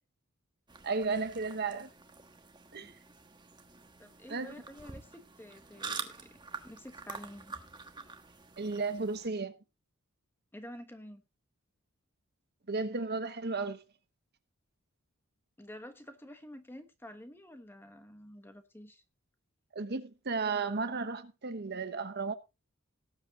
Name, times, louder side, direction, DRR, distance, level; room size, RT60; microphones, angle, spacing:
sound 1, 0.7-9.3, right 4 dB, 20° right, 1.2 m, -46 dB
voice 1, 0.8-1.9 2.7-2.9 4.3-4.5 8.6-9.5 12.7-13.8 19.7-22.3, right 4 dB, 50° right, 1.1 m, -34 dB
voice 2, 4.0-6.4 6.6-7.6 10.5-11.2 15.6-19.0, equal, 10° left, 1.3 m, -49 dB
18.5 x 8.0 x 2.9 m
head